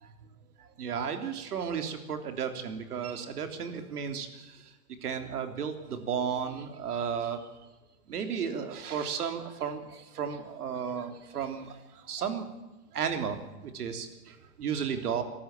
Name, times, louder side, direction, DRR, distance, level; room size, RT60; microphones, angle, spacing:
voice 1, 0.6-4.7 5.0-7.4 8.1-12.5 12.9-15.2, right 7 dB, 85° right, 7 dB, 3.4 m, -34 dB
23.5 x 13.5 x 9.0 m, 1.1 s
hypercardioid pair, 140°, 44 cm